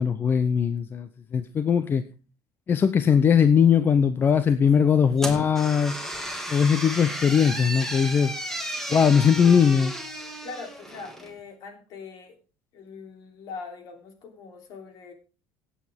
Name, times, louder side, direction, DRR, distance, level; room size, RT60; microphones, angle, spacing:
voice 1, 0.0-2.0 2.7-5.9 6.5-8.3 8.9-9.9, left 7 dB, 30° left, 12 dB, 0.7 m, -20 dB
voice 2, 4.3-5.3 8.9-9.3 10.4-12.4 12.7-15.1, left 4 dB, 60° left, 5 dB, 3.3 m, -42 dB
sound 1, 5.2-11.3, right 1 dB, 5° left, 2.4 m, -34 dB
17.0 x 8.6 x 3.6 m, 0.34 s
cardioid pair, 125°, 7 cm